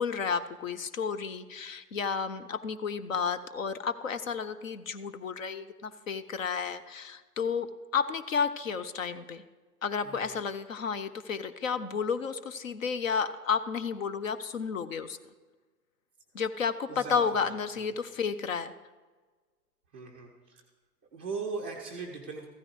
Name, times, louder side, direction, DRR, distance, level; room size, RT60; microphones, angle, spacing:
voice 1, 0.0-9.4 9.8-15.2 16.3-18.7, left 6 dB, 55° left, 12 dB, 0.7 m, -32 dB
voice 2, 10.0-10.4 16.9-17.2 17.8-17.9 19.9-20.6 21.1-22.5, right 4 dB, 10° right, -3 dB, 0.4 m, -39 dB
15.0 x 13.5 x 3.3 m, 1.4 s
figure-of-eight pair, 115°, 48 cm